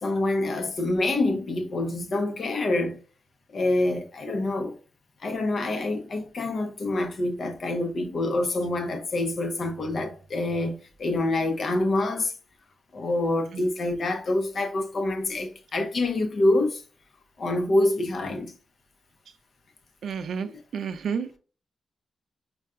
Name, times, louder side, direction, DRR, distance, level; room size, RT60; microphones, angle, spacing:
voice 1, 0.0-3.0 3.5-4.8 5.2-12.3 12.9-16.8 17.4-18.5 20.5-20.6, left 2 dB, 50° left, 0.7 m, -26 dB
voice 2, 20.0-20.5 20.7-21.4, right 6 dB, 70° right, 0.4 m, -30 dB
5.4 x 2.3 x 2.4 m
wide cardioid pair, 140°, 0 cm